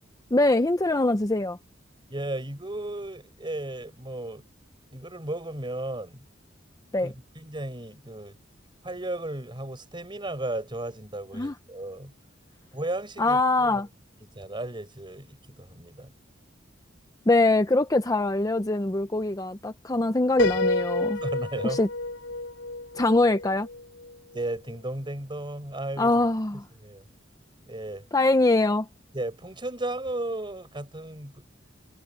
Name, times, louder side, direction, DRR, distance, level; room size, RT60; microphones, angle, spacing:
voice 1, 0.3-1.6 6.9-7.1 11.3-11.5 13.2-13.9 17.3-21.2 21.6-21.9 22.9-23.7 26.0-26.7 28.1-28.9, left 2 dB, 20° left, 0.7 m, -23 dB
voice 2, 2.1-4.4 4.9-6.2 7.0-8.4 8.8-12.1 12.7-13.8 14.4-16.1 21.1-21.8 24.3-26.1 26.8-27.0 27.7-28.1 29.1-31.4, right 1 dB, 25° right, 5.5 m, -34 dB
Piano, 20.4-24.1, left 2 dB, 75° left, 7.0 m, -29 dB
head